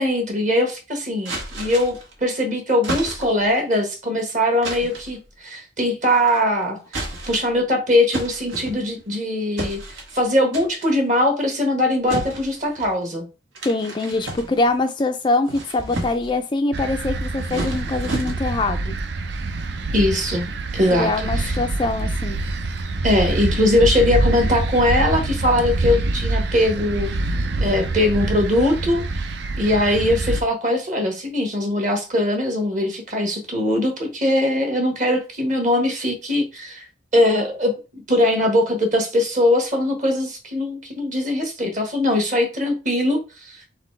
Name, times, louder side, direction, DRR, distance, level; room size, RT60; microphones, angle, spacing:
voice 1, 0.0-6.8 7.3-9.8 10.1-13.2 19.9-21.1 21.3-21.6 23.0-27.1 27.6-29.0 29.6-36.8 37.1-43.6, left 1 dB, 40° right, 1.3 m, -21 dB
sound 1, 1.2-2.1 2.8-3.5 4.6-5.1 6.1-6.5 6.9-7.6 8.1-9.1 9.6-10.2 10.5-11.0 12.1-12.9 13.5-14.8 15.3-16.4 17.1-18.7, right 1 dB, 80° right, 1.6 m, -32 dB
voice 2, 13.6-19.0 20.9-22.4, left 2 dB, 25° left, 0.3 m, -23 dB
sound 2, 16.7-30.4, right 2 dB, 60° right, 0.4 m, -25 dB
4.0 x 4.0 x 3.2 m
head